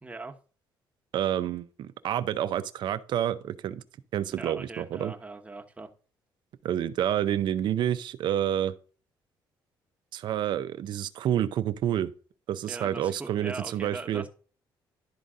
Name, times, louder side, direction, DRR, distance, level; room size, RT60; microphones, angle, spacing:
voice 1, 0.0-0.3 4.3-5.9 12.7-14.3, right 3 dB, 15° right, 1.1 m, -40 dB
voice 2, 1.1-3.8 4.1-5.1 6.6-8.7 10.1-12.1 12.5-14.2, right 10 dB, 70° right, 0.5 m, -28 dB
11.5 x 4.0 x 3.7 m
cardioid pair, 90°, 8 cm